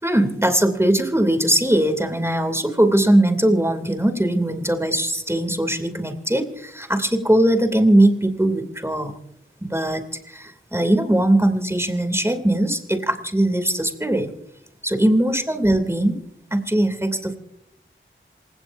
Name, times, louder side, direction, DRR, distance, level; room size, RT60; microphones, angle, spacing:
voice 1, 0.0-9.1 9.6-14.3 14.8-16.2 16.5-17.4, right 1 dB, 10° right, 6 dB, 2.7 m, -20 dB
27.5 x 17.0 x 2.6 m, 0.79 s
wide cardioid pair, 50°, 21 cm